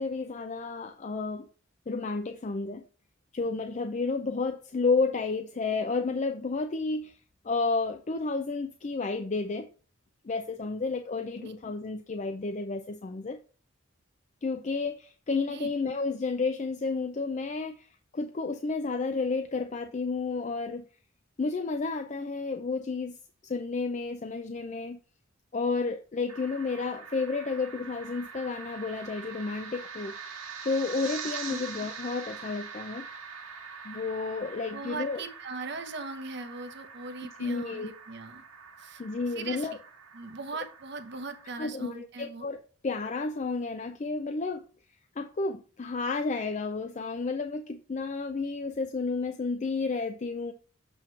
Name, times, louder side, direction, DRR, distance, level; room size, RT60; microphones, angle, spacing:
voice 1, 0.0-1.5 1.9-2.8 3.3-7.2 7.4-9.7 10.2-13.4 14.4-20.8 21.4-23.2 23.4-25.0 25.5-30.2 30.6-33.0 33.8-35.2 37.4-37.9 39.0-39.8 41.6-42.6 42.8-44.7 45.2-50.5, left 4 dB, 35° left, 0.4 m, -31 dB
sound 1, 26.3-41.6, right 5 dB, 85° right, 1.6 m, -44 dB
voice 2, 34.7-38.4 38.8-39.0 39.3-39.8 40.1-42.5, right 3 dB, 55° right, 0.8 m, -40 dB
7.8 x 3.0 x 5.7 m
head